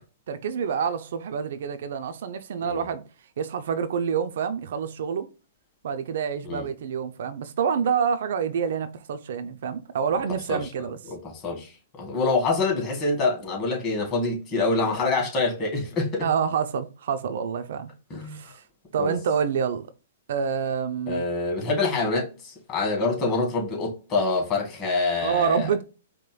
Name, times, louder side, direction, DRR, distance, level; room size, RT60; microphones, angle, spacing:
voice 1, 0.3-3.0 3.4-5.3 5.8-11.0 16.2-17.9 18.3-18.6 18.9-19.9 20.3-21.2 25.2-25.8, right 7 dB, 65° right, 0.5 m, -27 dB
voice 2, 12.0-16.3 18.1-18.4 19.0-19.1 21.1-25.7, left 3 dB, 30° left, 2.1 m, -26 dB
4.9 x 3.0 x 2.3 m
hypercardioid pair, 125°, 0 cm